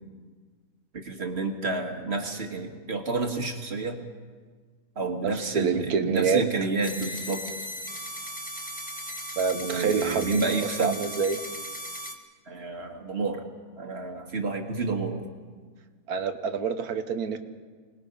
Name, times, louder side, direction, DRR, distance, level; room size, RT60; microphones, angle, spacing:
voice 1, 0.9-4.0 5.0-7.4 9.5-11.0 12.5-13.4 13.8-15.2, right 3 dB, 40° right, 3 dB, 2.0 m, -30 dB
voice 2, 5.2-6.4 9.4-11.4 16.1-17.4, right 5 dB, 70° right, 9 dB, 1.5 m, -27 dB
sound 1, 6.8-12.1, equal, 5° left, 1.6 m, -37 dB
25.0 x 19.5 x 5.4 m, 1.5 s
omnidirectional pair, 1.7 m